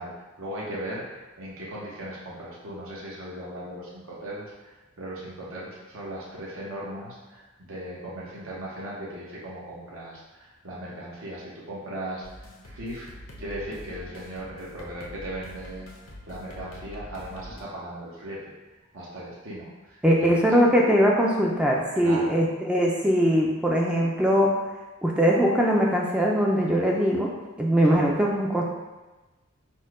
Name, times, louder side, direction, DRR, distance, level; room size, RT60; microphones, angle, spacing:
voice 1, 0.0-13.0 13.4-15.9 16.2-18.5 18.9-20.5 22.0-22.3 27.9-28.1, right 1 dB, 80° right, -6 dB, 0.9 m, -38 dB
sound 1, 12.2-17.6, equal, 75° left, 0.8 m, -44 dB
voice 2, 20.0-24.5 25.0-27.3 27.6-28.7, equal, 5° right, -2 dB, 0.4 m, -21 dB
4.3 x 2.2 x 4.7 m, 1.1 s
head